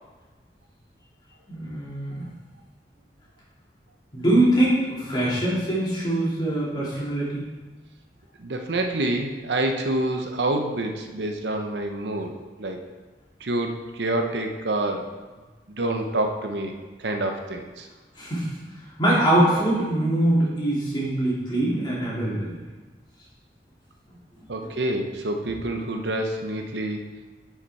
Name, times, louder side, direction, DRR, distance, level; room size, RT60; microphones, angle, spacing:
voice 1, 1.5-2.3 4.1-7.4 18.2-18.5 19.0-22.5, right 1 dB, 25° left, -7 dB, 2.8 m, -23 dB
voice 2, 8.4-12.8 13.4-15.1 15.8-17.9 24.5-27.0, right 1 dB, 80° right, 4 dB, 0.8 m, -27 dB
10.5 x 5.7 x 4.2 m, 1.3 s
head